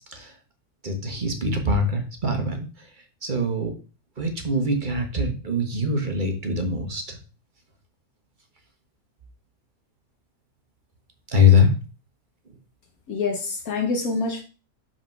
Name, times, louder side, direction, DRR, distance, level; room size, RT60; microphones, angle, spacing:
voice 1, 0.8-2.9 3.2-3.7 4.2-7.2 11.3-11.7, left 3 dB, 35° right, 1.3 m, -23 dB
voice 2, 13.1-14.4, left 4 dB, 70° left, 1.4 m, -26 dB
5.7 x 4.4 x 5.8 m
omnidirectional pair, 1.6 m